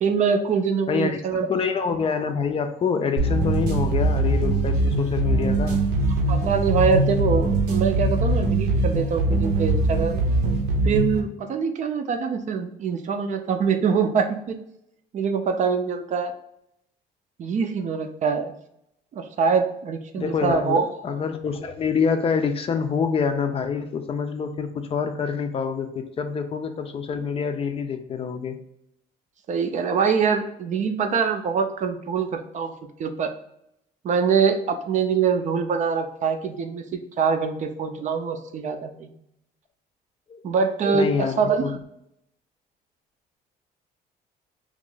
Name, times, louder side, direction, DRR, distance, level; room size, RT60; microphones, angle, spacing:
voice 1, 0.0-1.5 6.3-10.2 10.8-14.6 15.1-16.3 17.4-18.5 19.1-21.1 29.5-32.7 33.0-33.3 34.0-39.1 40.4-41.8, right 5 dB, 45° right, 6 dB, 0.5 m, -24 dB
voice 2, 0.9-5.8 20.2-28.6 40.3-40.5 40.9-41.7, left 6 dB, 35° left, 7 dB, 0.4 m, -26 dB
sound 1, 3.2-11.2, right 2 dB, 80° right, 0.8 m, -22 dB
3.0 x 2.5 x 3.8 m, 0.75 s
cardioid pair, 110°, 17 cm